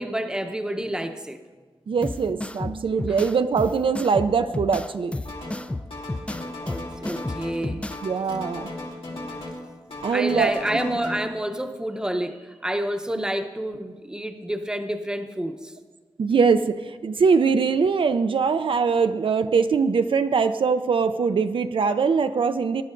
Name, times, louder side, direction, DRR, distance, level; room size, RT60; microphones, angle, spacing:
voice 1, 0.0-1.4 6.2-7.8 10.1-15.7, right 1 dB, 10° right, 7 dB, 0.7 m, -29 dB
voice 2, 1.9-5.1 7.6-8.7 9.1-9.2 10.0-10.9 16.2-22.8, right 5 dB, 65° right, 9 dB, 0.4 m, -22 dB
sound 1, 2.0-8.0, left 2 dB, 10° left, 0.3 m, -32 dB
sound 2, 5.2-5.6 5.9-7.6 7.9-9.6 9.9-11.1, left 2 dB, 80° left, 2.7 m, -36 dB
19.5 x 11.5 x 2.5 m, 1.4 s
wide cardioid pair, 110°, 10 cm